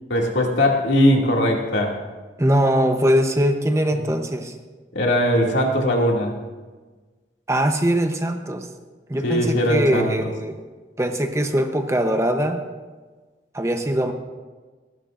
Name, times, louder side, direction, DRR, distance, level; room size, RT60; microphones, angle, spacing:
voice 1, 0.1-2.0 4.0-4.1 4.9-6.3 9.2-10.3, left 1 dB, 85° left, -1 dB, 2.4 m, -20 dB
voice 2, 2.4-4.5 7.5-8.7 9.1-10.6 11.0-12.6 13.5-14.1, equal, 15° right, 5 dB, 0.8 m, -21 dB
28.0 x 12.5 x 2.6 m, 1.4 s
head